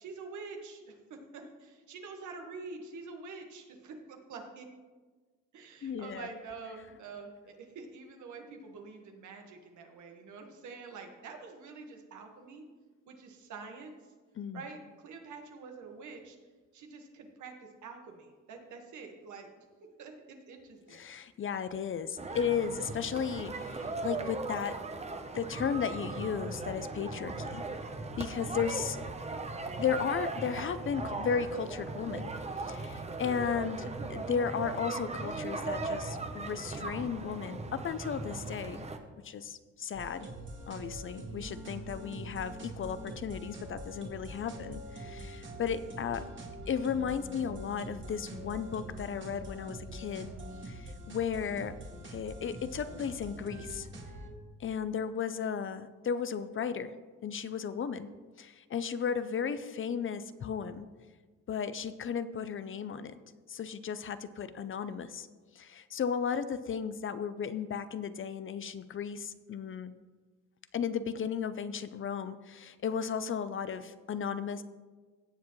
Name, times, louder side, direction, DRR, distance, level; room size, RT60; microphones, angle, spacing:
voice 1, 0.0-4.7 5.5-12.6 13.1-13.9 14.5-16.4 16.7-19.7 20.0-21.0, right 4 dB, 75° right, 3 dB, 1.6 m, -46 dB
voice 2, 5.8-6.3 14.4-14.6 20.9-24.8 25.3-27.8 28.2-29.0 29.8-32.3 32.6-38.9 39.2-40.3 40.7-46.3 46.7-50.3 50.6-51.8 52.0-53.9 54.6-56.9 57.2-58.1 58.4-60.9 61.5-63.2 63.5-65.3 65.5-69.9 70.7-74.6, left 7 dB, 45° left, 13 dB, 0.6 m, -35 dB
sound 1, 22.2-39.0, right 3 dB, 20° right, 0.9 m, -38 dB
sound 2, 39.9-54.3, right 1 dB, 40° right, 2.0 m, -44 dB
16.5 x 7.2 x 3.2 m, 1.4 s
cardioid pair, 90°, 30 cm